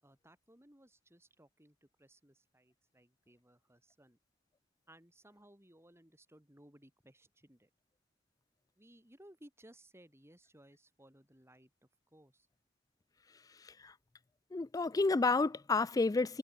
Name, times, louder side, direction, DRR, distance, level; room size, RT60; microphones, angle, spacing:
voice 1, 0.0-4.2 4.9-7.7 8.8-11.7 12.1-12.5, right 1 dB, 15° right, 7.2 m, -61 dB
voice 2, 14.5-16.4, left 3 dB, 20° left, 0.4 m, -30 dB
head